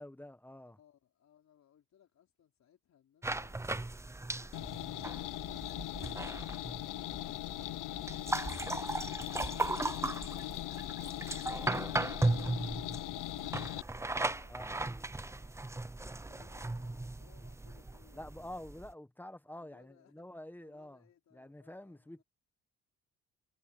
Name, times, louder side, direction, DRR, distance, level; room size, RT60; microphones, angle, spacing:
voice 1, 0.0-0.8 14.5-15.0 18.1-21.0 21.3-22.2, left 1 dB, 5° left, 1.4 m, -48 dB
voice 2, 0.7-3.9 13.7-15.8 16.3-18.3 19.6-20.3 20.6-22.2, left 9 dB, 60° left, 4.7 m, -65 dB
sound 1, 3.2-18.9, right 2 dB, 10° right, 0.6 m, -37 dB
sound 2, 3.6-10.4, left 7 dB, 45° left, 5.2 m, -72 dB
sound 3, 4.5-13.8, left 18 dB, 85° left, 0.6 m, -40 dB
cardioid pair, 90°, 30 cm